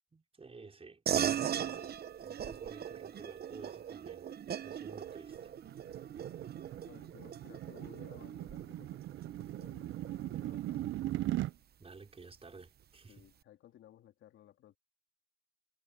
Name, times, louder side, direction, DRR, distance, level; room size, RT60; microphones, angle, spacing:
voice 1, 0.1-1.0 1.5-2.0 2.2-4.3 4.6-5.5 11.8-13.2, right 4 dB, 30° right, 5.6 m, -53 dB
sound 1, 1.1-10.9, right 9 dB, 50° right, 1.0 m, -39 dB
sound 2, 5.1-11.5, right 14 dB, 80° right, 0.6 m, -40 dB
voice 2, 6.8-11.0 13.1-14.8, left 12 dB, 80° left, 3.7 m, -58 dB
cardioid pair, 90°, 20 cm